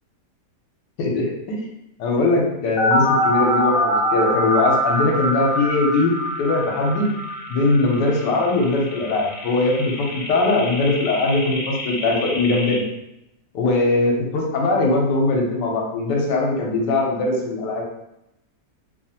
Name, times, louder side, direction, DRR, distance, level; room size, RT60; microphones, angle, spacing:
voice 1, 1.0-1.6 2.0-7.1 7.5-12.8 13.5-17.8, left 2 dB, 85° left, 0 dB, 1.2 m, -21 dB
sound 1, 2.8-12.8, equal, 60° left, 1.0 m, -24 dB
3.0 x 2.4 x 2.7 m, 0.86 s
omnidirectional pair, 1.8 m